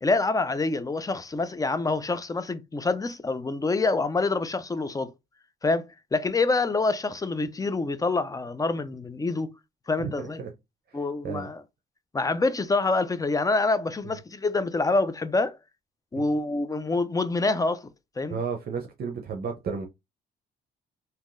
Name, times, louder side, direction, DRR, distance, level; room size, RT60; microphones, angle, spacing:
voice 1, 0.0-5.1 5.6-9.5 9.9-10.4 10.9-11.6 12.1-15.6 16.1-17.9 18.2-18.4, left 3 dB, 20° left, 0.4 m, -26 dB
voice 2, 10.0-10.5 10.9-11.0 11.2-11.5 16.1-16.3 18.3-19.9, right 6 dB, 50° right, 0.6 m, -33 dB
3.5 x 2.7 x 2.5 m
cardioid pair, 90°, 20 cm